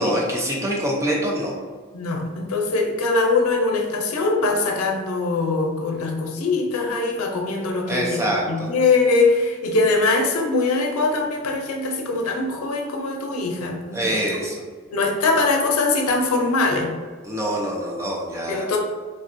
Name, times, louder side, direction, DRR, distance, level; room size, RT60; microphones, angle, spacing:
voice 1, 0.0-1.5 7.9-8.7 13.9-14.6 17.2-18.7, right 1 dB, 15° right, -2 dB, 0.4 m, -25 dB
voice 2, 1.9-14.0 14.9-16.9 18.5-18.8, left 3 dB, 85° left, 1 dB, 0.5 m, -22 dB
3.4 x 2.2 x 2.5 m, 1.5 s
head